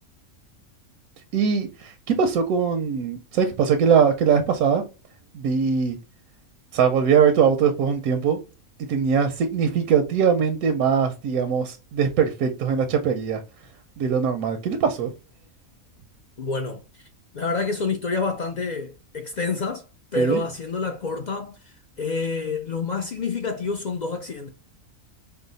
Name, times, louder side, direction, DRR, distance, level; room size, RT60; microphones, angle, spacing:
voice 1, 1.3-4.8 5.3-6.0 6.7-8.4 8.9-13.4 14.0-15.1 20.2-20.4, right 6 dB, 90° right, 1.1 m, -21 dB
voice 2, 16.4-17.1 17.3-19.9 20.1-24.5, left 4 dB, 70° left, 0.4 m, -28 dB
4.7 x 2.0 x 3.8 m
omnidirectional pair, 1.5 m